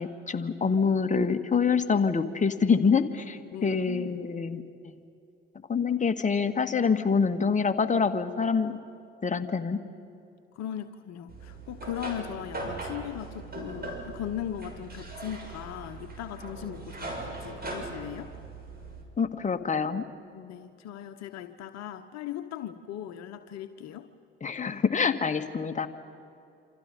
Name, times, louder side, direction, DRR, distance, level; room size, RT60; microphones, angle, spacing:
voice 1, 0.0-4.9 5.7-8.7 9.2-9.8 19.2-20.0 24.4-25.9, left 5 dB, 25° left, 7 dB, 1.8 m, -26 dB
voice 2, 3.5-4.2 10.5-18.3 20.3-24.1, left 10 dB, 55° left, 8 dB, 1.2 m, -38 dB
sound 1, 11.3-19.0, right 2 dB, 30° right, 6.6 m, -40 dB
28.5 x 26.5 x 5.4 m, 2.6 s
hypercardioid pair, 60°, 32 cm